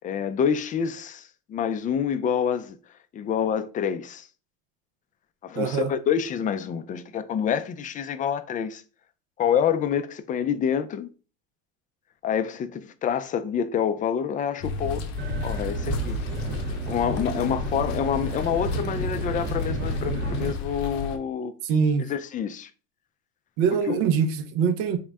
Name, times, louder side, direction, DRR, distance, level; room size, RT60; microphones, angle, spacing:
voice 1, 0.0-2.8 3.1-4.3 5.4-8.8 9.4-11.1 12.2-15.0 15.4-16.2 16.7-21.5 22.1-22.7 23.9-24.0, left 8 dB, 25° left, 0.3 m, -27 dB
voice 2, 5.5-5.9 21.6-22.1 23.6-25.0, right 6 dB, 80° right, 0.6 m, -23 dB
sound 1, 14.6-21.2, left 5 dB, 90° left, 0.6 m, -33 dB
sound 2, 15.2-20.5, right 3 dB, 35° right, 0.7 m, -32 dB
3.7 x 2.0 x 3.4 m
supercardioid pair, 100°, 31 cm